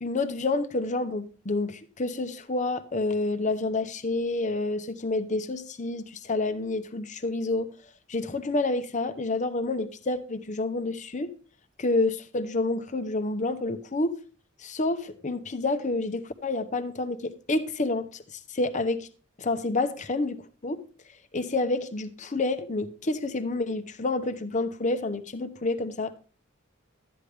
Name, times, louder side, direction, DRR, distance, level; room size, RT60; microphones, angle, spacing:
voice 1, 0.0-7.7 8.1-11.3 11.8-14.2 14.6-19.1 19.4-20.8 21.3-26.2, left 2 dB, 35° left, 0.9 m, -29 dB
13.0 x 9.9 x 3.4 m
head